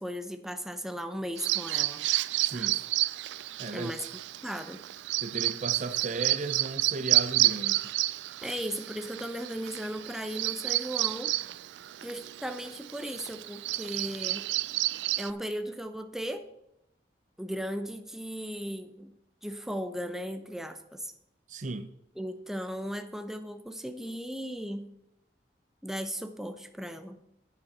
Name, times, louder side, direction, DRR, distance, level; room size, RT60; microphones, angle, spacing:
voice 1, 0.0-2.1 3.7-4.0 4.4-4.8 8.4-11.3 12.0-14.4 15.2-16.4 17.4-19.1 19.4-21.1 22.2-24.9 25.8-27.2, equal, ahead, 0.6 m, -36 dB
Bird vocalization bird call bird song, 1.4-15.3, right 17 dB, 90° right, 0.3 m, -30 dB
voice 2, 2.4-2.8 3.6-3.9 5.2-7.9 21.5-21.9, right 3 dB, 45° right, 0.6 m, -36 dB
10.5 x 9.1 x 4.2 m
head